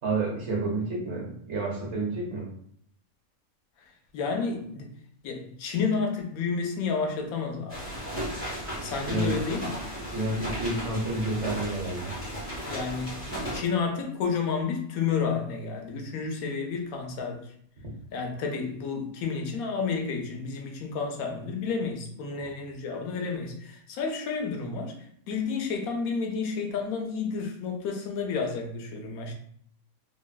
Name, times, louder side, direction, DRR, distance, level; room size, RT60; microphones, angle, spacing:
voice 1, 0.0-2.5 9.1-9.3 10.1-12.1 22.4-22.5, right 2 dB, 55° right, 1.2 m, -30 dB
voice 2, 4.1-4.9 5.2-7.8 8.8-9.7 12.6-17.5 18.1-25.0 25.3-29.3, left 5 dB, 85° left, 1.1 m, -31 dB
sound 1, 7.7-13.6, equal, 10° left, 0.9 m, -35 dB
3.0 x 2.6 x 2.2 m
omnidirectional pair, 1.5 m